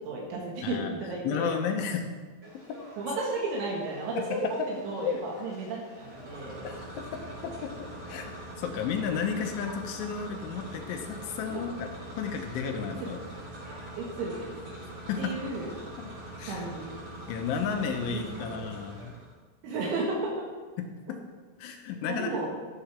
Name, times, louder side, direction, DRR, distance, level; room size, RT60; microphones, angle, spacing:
voice 1, 0.1-1.6 3.0-6.7 11.5-11.6 13.0-13.1 14.0-14.5 15.2-15.7 16.5-17.0 18.1-18.7 19.6-20.5 22.1-22.5, right 2 dB, 85° right, -3 dB, 4.1 m, -33 dB
voice 2, 0.6-1.0 1.2-2.0 2.6-2.8 4.2-4.7 5.0-5.2 6.6-13.2 15.1-15.4 16.0-16.7 17.3-19.2 21.1-21.2 21.6-22.5, left 6 dB, 85° left, 4 dB, 3.5 m, -33 dB
Conversation / Crowd, 2.4-19.0, equal, 15° right, 3.3 m, -52 dB
sound 1, 5.9-19.3, right 1 dB, 35° right, 4.7 m, -43 dB
13.0 x 12.5 x 3.5 m, 1.4 s
omnidirectional pair, 5.4 m